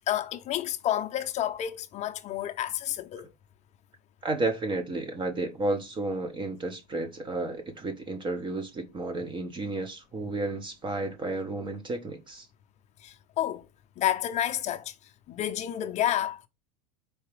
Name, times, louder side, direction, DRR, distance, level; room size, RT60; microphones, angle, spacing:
voice 1, 0.1-3.3 13.0-13.7 14.0-14.9 15.3-16.5, left 11 dB, 35° left, 0.6 m, -30 dB
voice 2, 4.2-12.5, right 2 dB, 25° right, 0.7 m, -32 dB
4.6 x 2.8 x 3.3 m
hypercardioid pair, 110°, 21 cm